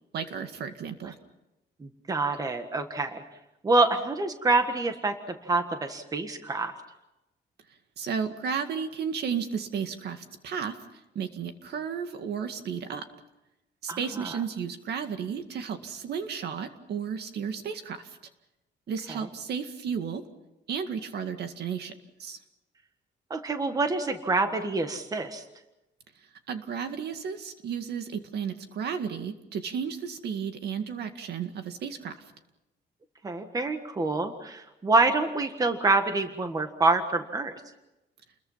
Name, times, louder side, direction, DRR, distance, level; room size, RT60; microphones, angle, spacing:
voice 1, 0.1-1.2 8.0-10.8 11.2-13.0 13.8-18.2 18.9-20.2 20.7-21.9 22.2-22.4 26.5-32.1, right 7 dB, 65° right, 7 dB, 2.1 m, -33 dB
voice 2, 1.8-3.2 3.6-5.1 5.4-6.7 13.9-14.4 19.1-19.3 23.3-25.4 33.2-37.5, right 3 dB, 20° right, 7 dB, 1.5 m, -26 dB
30.0 x 21.5 x 5.7 m, 0.96 s
cardioid pair, 170°, 18 cm